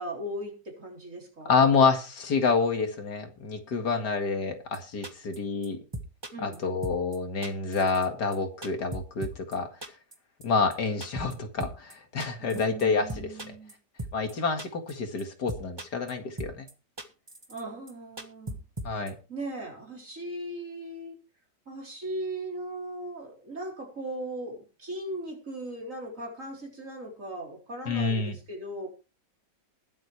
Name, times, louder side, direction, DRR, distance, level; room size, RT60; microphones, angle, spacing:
voice 1, 0.0-1.6 6.3-6.6 12.4-13.7 17.5-18.6 19.3-21.2 21.7-28.9, right 1 dB, 45° right, 0 dB, 4.3 m, -38 dB
voice 2, 1.5-5.8 6.4-9.7 10.4-13.3 14.1-16.7 18.8-19.1 27.9-28.4, left 4 dB, 70° left, 5 dB, 2.5 m, -27 dB
sound 1, 4.7-4.8 5.0-5.4 5.6-5.7 5.9-6.6 6.8-7.2 7.4-8.1 8.3-8.4 8.6-9.6 9.8-10.2 10.4-10.5 10.7-10.8 11.0-11.3 11.6-11.9 12.2-12.8 13.1-13.7 14.0-14.3 14.6-14.9 15.2-15.3 15.5-16.1 16.4-16.7 17.0-17.6 17.9-18.0 18.2-19.1, right 1 dB, 15° right, 1.3 m, -37 dB
20.5 x 7.9 x 3.3 m, 0.31 s
omnidirectional pair, 1.9 m